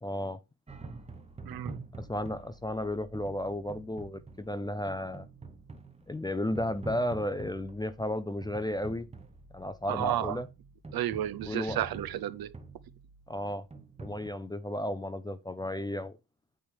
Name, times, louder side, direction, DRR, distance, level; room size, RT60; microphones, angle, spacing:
voice 1, 0.0-0.4 2.0-5.3 6.1-9.1 9.5-10.5 11.4-11.8 13.3-13.7 14.0-16.2, left 1 dB, 10° left, 0.4 m, -33 dB
sound 1, 0.7-14.3, right 3 dB, 15° right, 0.9 m, -47 dB
voice 2, 1.4-1.8 9.9-10.4 10.9-12.5, right 12 dB, 65° right, 0.8 m, -32 dB
8.8 x 3.4 x 6.3 m
cardioid pair, 140°, 38 cm